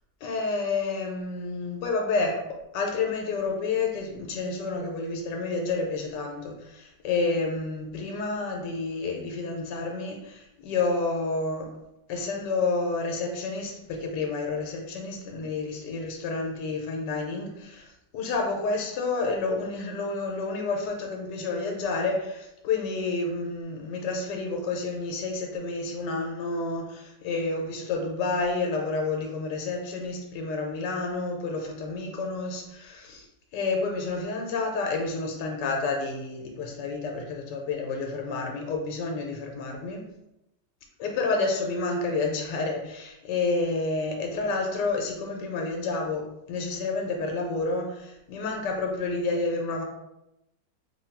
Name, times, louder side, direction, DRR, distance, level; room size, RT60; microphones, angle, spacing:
voice 1, 0.2-11.8 12.1-33.3 33.5-40.1 41.0-49.8, left 3 dB, 85° left, 1 dB, 1.3 m, -29 dB
3.5 x 2.3 x 4.4 m, 0.86 s
omnidirectional pair, 1.8 m